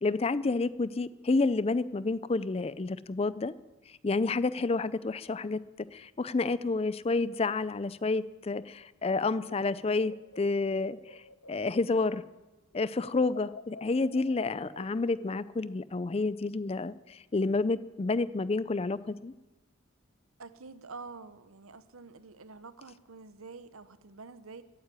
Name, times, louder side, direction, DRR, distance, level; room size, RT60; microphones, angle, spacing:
voice 1, 0.0-3.5 3.9-5.6 5.9-11.2 11.5-12.2 12.7-19.3, left 3 dB, 30° left, 0.4 m, -29 dB
sound 1, 9.4-12.4 12.7-15.8, left 3 dB, 80° left, 1.1 m, -50 dB
voice 2, 20.4-24.6, right 4 dB, 85° right, 1.0 m, -47 dB
15.0 x 9.6 x 9.9 m
head